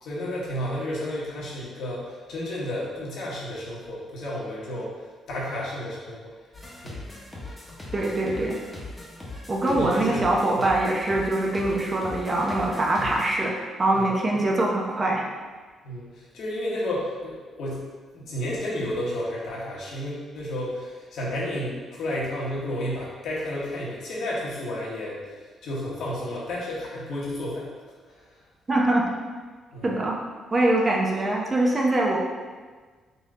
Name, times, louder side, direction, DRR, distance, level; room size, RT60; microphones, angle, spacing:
voice 1, 0.0-4.9 5.3-6.3 6.8-7.0 9.6-10.7 13.0-13.1 13.9-14.4 15.8-17.9 18.1-25.2 25.6-27.7 28.2-28.3 29.7-30.0, left 1 dB, 75° left, -5 dB, 1.2 m, -32 dB
sound 1, 6.5-13.4, left 2 dB, 10° left, 1.1 m, -40 dB
voice 2, 7.9-8.6 9.5-15.2 28.7-29.0 29.8-30.2 30.5-32.2, right 2 dB, 30° right, -2 dB, 0.7 m, -23 dB
4.0 x 2.9 x 3.6 m, 1.4 s
cardioid pair, 90°, 0 cm